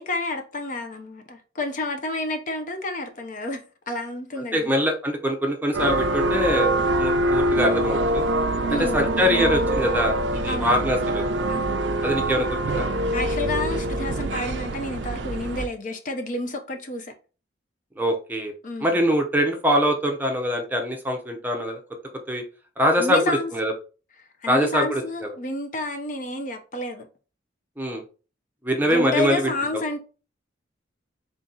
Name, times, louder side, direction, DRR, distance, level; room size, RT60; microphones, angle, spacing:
voice 1, 0.0-4.7 8.7-9.0 10.5-10.8 11.5-12.0 13.1-17.1 18.6-19.0 23.0-23.5 24.4-27.1 28.8-30.0, left 2 dB, 45° left, 0.6 m, -30 dB
voice 2, 4.5-8.2 8.8-11.2 12.0-12.9 18.0-18.5 18.8-21.8 22.3-22.4 22.8-23.7 24.5-25.3 27.8-28.0 28.6-29.5, equal, 10° right, 0.6 m, -23 dB
sound 1, 5.7-15.7, right 1 dB, 70° right, 0.4 m, -24 dB
3.7 x 2.8 x 3.7 m
head